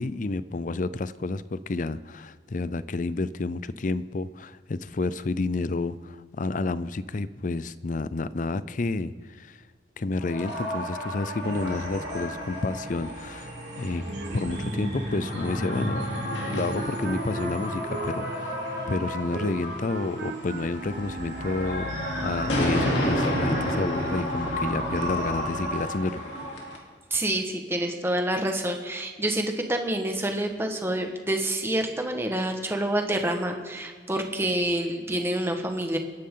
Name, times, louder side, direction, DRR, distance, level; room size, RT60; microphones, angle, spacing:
voice 1, 0.0-9.6 10.0-14.0 14.3-18.6 18.9-26.2, left 3 dB, 45° left, 15 dB, 0.5 m, -30 dB
sound 1, 10.2-26.8, left 1 dB, 85° left, 2.9 m, -32 dB
sound 2, 11.4-25.7, right 1 dB, 85° right, 3.2 m, -35 dB
Wind instrument woodwind instrument, 16.2-21.9, right 2 dB, 60° right, 1.4 m, -39 dB
voice 2, 27.1-36.0, right 1 dB, 15° right, 4 dB, 1.4 m, -27 dB
27.0 x 11.0 x 3.9 m, 1.5 s
head